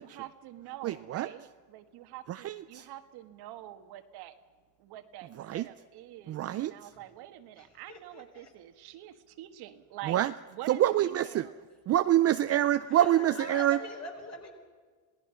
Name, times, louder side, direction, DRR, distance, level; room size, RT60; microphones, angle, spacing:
voice 1, 0.0-4.3 4.8-10.2 10.5-11.6, right 13 dB, 55° right, 7 dB, 1.6 m, -46 dB
voice 2, 0.8-1.3 2.3-2.9 5.4-5.7 6.3-6.7 10.1-10.3 10.7-11.5 11.9-13.8, right 12 dB, 35° right, 11 dB, 0.5 m, -26 dB
voice 3, 7.6-8.5 12.9-14.5, left 1 dB, 35° left, 2 dB, 5.0 m, -43 dB
27.0 x 18.5 x 5.8 m, 1.5 s
supercardioid pair, 125°, 45 cm